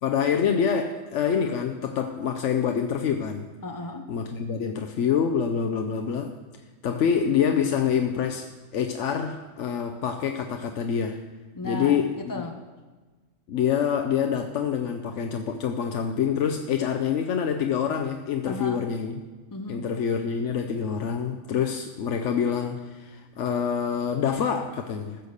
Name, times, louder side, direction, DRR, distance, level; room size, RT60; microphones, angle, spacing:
voice 1, 0.0-3.5 4.1-6.4 6.8-11.2 11.6-12.1 13.5-19.1 19.7-25.2, left 7 dB, 65° left, 5 dB, 1.0 m, -26 dB
voice 2, 3.6-4.2 11.5-12.7 18.5-18.8 19.5-20.0, left 1 dB, 25° left, 4 dB, 0.4 m, -36 dB
15.0 x 6.8 x 6.5 m, 1.3 s
omnidirectional pair, 1.4 m